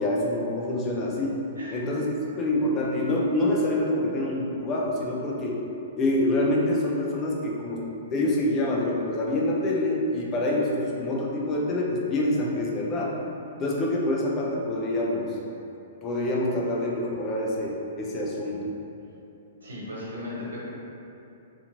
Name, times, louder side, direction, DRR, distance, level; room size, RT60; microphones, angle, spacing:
voice 1, 0.0-1.3 1.7-2.1 2.4-5.6 5.9-7.8 8.1-13.2 13.6-15.3 16.0-18.7, left 1 dB, 25° left, -3 dB, 0.5 m, -26 dB
voice 2, 19.6-20.6, left 1 dB, 85° right, -7 dB, 0.9 m, -36 dB
2.8 x 2.5 x 2.5 m, 2.8 s
hypercardioid pair, 120°, 0 cm